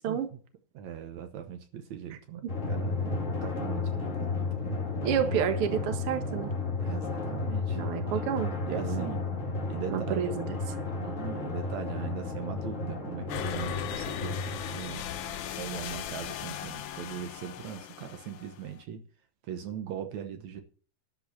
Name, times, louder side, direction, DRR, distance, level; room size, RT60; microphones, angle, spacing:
voice 1, 0.1-0.4 0.7-3.2 3.4-4.9 6.8-7.8 8.6-9.3 9.7-10.3 11.0-19.0 19.5-20.6, right 9 dB, 75° right, 2.3 m, -40 dB
Drum, 2.5-15.6, left 3 dB, 30° left, 2.1 m, -33 dB
voice 2, 5.0-6.5 7.7-9.1 9.9-10.6, right 9 dB, 55° right, 2.1 m, -30 dB
sound 1, 13.3-18.8, left 11 dB, 70° left, 1.4 m, -38 dB
12.5 x 5.5 x 8.3 m
omnidirectional pair, 3.4 m